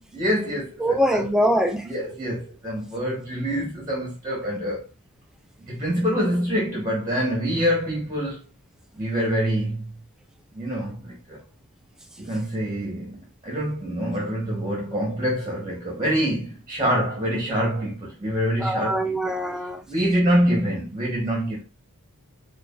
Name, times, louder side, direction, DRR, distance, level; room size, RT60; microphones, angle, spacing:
voice 1, 0.0-1.3 1.8-4.9 5.6-8.4 8.9-9.9 10.5-11.4 12.2-19.3 19.9-21.6, equal, 20° right, 1.2 m, -26 dB
voice 2, 0.8-1.9 18.6-19.8, equal, 5° right, 0.4 m, -23 dB
4.7 x 2.5 x 2.4 m
head